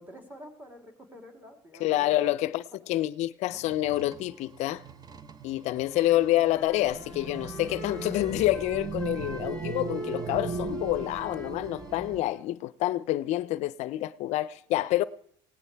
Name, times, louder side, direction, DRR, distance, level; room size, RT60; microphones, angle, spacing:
voice 1, 0.0-2.3 3.6-3.7, equal, 15° right, 3.2 m, -48 dB
voice 2, 1.8-4.8 5.4-15.0, left 15 dB, 65° left, 0.5 m, -28 dB
sound 1, 3.5-12.2, right 4 dB, 30° right, 0.9 m, -38 dB
Wind instrument woodwind instrument, 5.7-12.4, equal, 5° left, 7.3 m, -45 dB
18.5 x 17.0 x 3.4 m
supercardioid pair, 80°, 13 cm